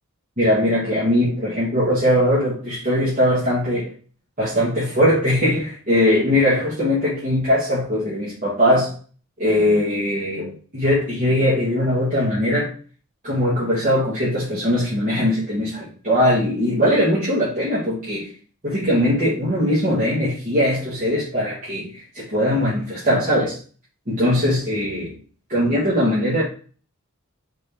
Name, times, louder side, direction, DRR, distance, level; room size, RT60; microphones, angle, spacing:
voice 1, 0.4-3.9 4.4-8.9 9.4-12.7 13.2-18.3 18.6-23.6 24.1-25.1 25.5-26.4, left 1 dB, 40° right, -9 dB, 1.4 m, -20 dB
3.7 x 3.2 x 3.4 m, 0.40 s
head